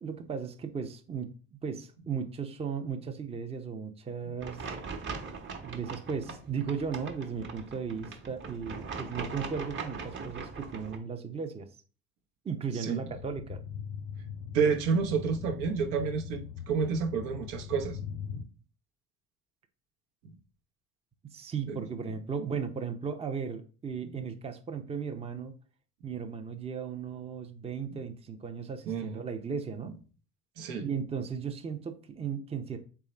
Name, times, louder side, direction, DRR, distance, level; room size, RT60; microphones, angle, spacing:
voice 1, 0.0-4.6 5.6-11.7 12.4-13.6 21.2-25.5 26.0-29.9 30.8-32.8, right 6 dB, 20° right, 0.6 m, -36 dB
sound 1, 4.4-11.0, right 5 dB, 35° right, 1.1 m, -40 dB
voice 2, 12.7-13.1 14.5-18.0 18.3-18.5 20.2-20.3 21.7-21.8 28.9-29.2 30.6-30.9, right 6 dB, 70° right, 0.9 m, -30 dB
sound 2, 13.1-18.4, left 7 dB, 90° left, 0.5 m, -41 dB
3.6 x 3.2 x 4.3 m
supercardioid pair, 85°, 31 cm